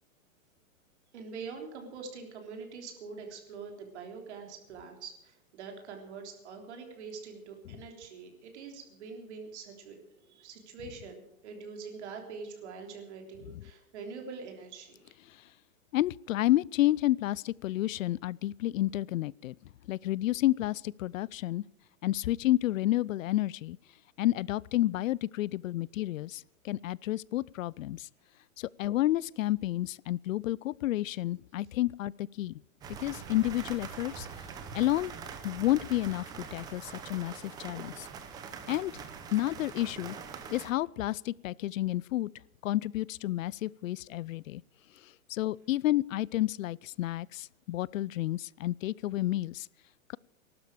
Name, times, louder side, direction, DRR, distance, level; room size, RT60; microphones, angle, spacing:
voice 1, 1.1-15.2, right 5 dB, 55° right, 3.7 m, -44 dB
voice 2, 15.9-19.6 19.9-21.6 22.0-23.8 24.2-28.1 28.6-32.6 33.0-34.3 34.7-35.1 35.4-38.1 38.7-39.0 39.3-40.2 40.5-42.3 42.6-44.6 45.0-49.7, left 15 dB, 70° left, 0.5 m, -30 dB
sound 1, 32.8-40.7, right 6 dB, 10° right, 0.7 m, -43 dB
19.5 x 12.0 x 4.9 m
hypercardioid pair, 165°, 41 cm